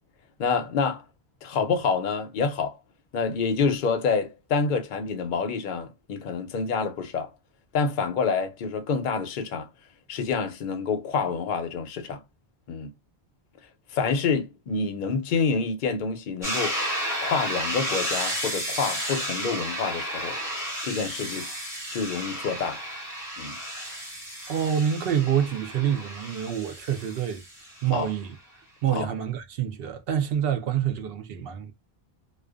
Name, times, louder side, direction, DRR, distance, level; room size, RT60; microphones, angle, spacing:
voice 1, 0.4-1.0 1.4-2.8 3.1-7.3 7.7-9.7 10.1-12.2 12.7-12.9 13.9-16.8 17.2-20.4 20.8-21.5 21.9-22.8 23.4-23.6 27.9-28.1 28.9-29.1, left 5 dB, 60° left, 0.6 m, -27 dB
sound 1, 16.4-28.1, equal, 5° right, 1.1 m, -32 dB
voice 2, 24.5-27.4 27.8-28.4 28.8-31.7, right 9 dB, 70° right, 0.8 m, -27 dB
2.4 x 2.2 x 2.3 m
omnidirectional pair, 1.0 m